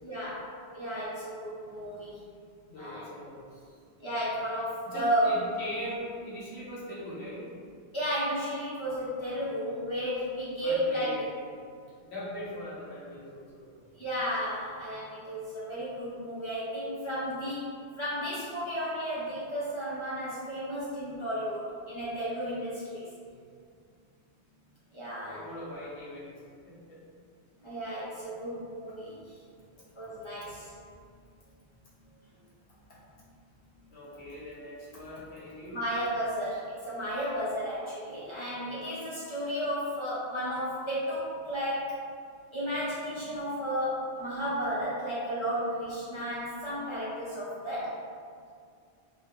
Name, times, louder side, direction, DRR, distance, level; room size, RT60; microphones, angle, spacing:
voice 1, 0.0-2.2 2.8-3.1 4.0-5.3 7.9-11.2 14.0-23.1 24.9-25.5 27.6-29.4 29.9-30.7 35.7-42.0 42.5-48.0, equal, 35° left, -10 dB, 0.6 m, -33 dB
voice 2, 2.7-3.7 4.8-7.5 10.6-11.6 12.0-13.7 23.2-23.5 25.3-26.3 26.7-27.0 32.9-33.0 33.9-35.8, left 1 dB, 75° left, -8 dB, 1.2 m, -41 dB
3.4 x 2.2 x 3.0 m, 2.2 s
omnidirectional pair, 1.1 m